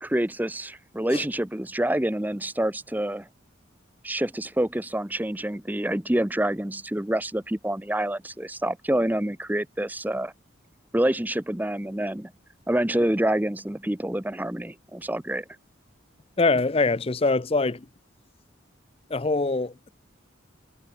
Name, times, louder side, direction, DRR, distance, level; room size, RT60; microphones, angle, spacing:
voice 1, 0.0-3.3 4.0-10.3 10.9-12.3 12.7-15.4, right 1 dB, 10° right, 0.7 m, -27 dB
voice 2, 16.4-17.9 19.1-19.9, left 3 dB, 30° left, 0.6 m, -23 dB
head